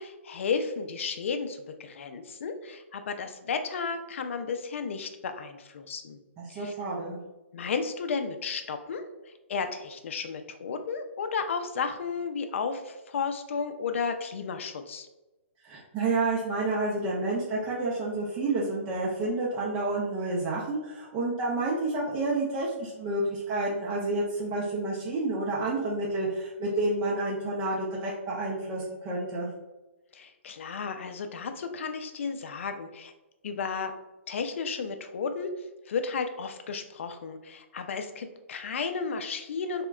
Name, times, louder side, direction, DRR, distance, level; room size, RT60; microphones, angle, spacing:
voice 1, 0.0-6.2 6.5-6.7 7.5-9.1 9.5-15.1 30.1-33.1 33.4-33.9 34.3-35.5 35.9-39.9, left 5 dB, 65° left, 8 dB, 0.4 m, -33 dB
voice 2, 6.4-7.2 15.6-29.5, right 2 dB, 25° right, -5 dB, 0.5 m, -29 dB
3.5 x 2.1 x 2.3 m, 1.0 s
hypercardioid pair, 145°, 7 cm